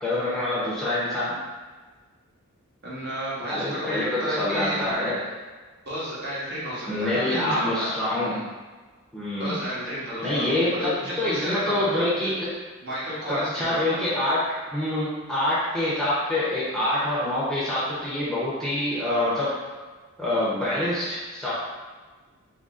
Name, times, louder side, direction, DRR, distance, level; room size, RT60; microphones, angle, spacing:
voice 1, 0.0-1.3 3.5-5.1 6.9-8.4 9.1-9.6 10.2-12.5 13.3-14.5 14.7-19.5 20.2-21.5, left 1 dB, ahead, -10 dB, 0.8 m, -26 dB
voice 2, 2.8-4.9 5.9-8.0 9.4-12.0 12.8-14.0, equal, 45° right, -8 dB, 1.2 m, -32 dB
2.9 x 2.8 x 3.7 m, 1.3 s
head